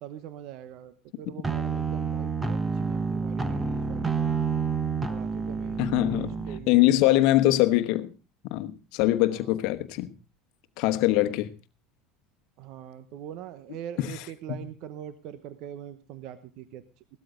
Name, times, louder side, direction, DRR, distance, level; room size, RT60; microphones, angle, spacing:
voice 1, 0.0-4.4 5.1-7.3 9.3-9.7 12.6-16.8, right 10 dB, 65° right, 0.9 m, -42 dB
sound 1, 1.4-6.6, right 5 dB, 20° right, 1.3 m, -29 dB
voice 2, 5.8-6.3 6.7-8.1 8.5-10.1 10.8-11.5 14.0-14.1, left 16 dB, 65° left, 1.1 m, -23 dB
17.0 x 13.0 x 3.8 m
hypercardioid pair, 90°, 0 cm